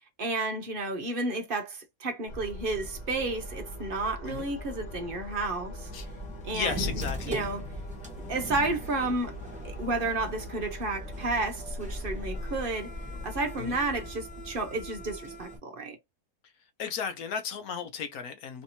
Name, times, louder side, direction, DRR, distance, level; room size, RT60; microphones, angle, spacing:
voice 1, 0.2-5.9 6.4-6.9 7.3-7.7 8.3-9.4 9.6-12.9 13.2-16.0, right 2 dB, 45° right, 0.8 m, -31 dB
sound 1, 2.3-15.2, equal, 45° left, 0.6 m, -42 dB
sound 2, 5.8-15.6, left 1 dB, 5° right, 1.1 m, -40 dB
voice 2, 6.5-7.5 13.5-13.8 16.8-18.6, left 7 dB, 70° left, 1.1 m, -35 dB
3.3 x 2.9 x 2.7 m
omnidirectional pair, 1.7 m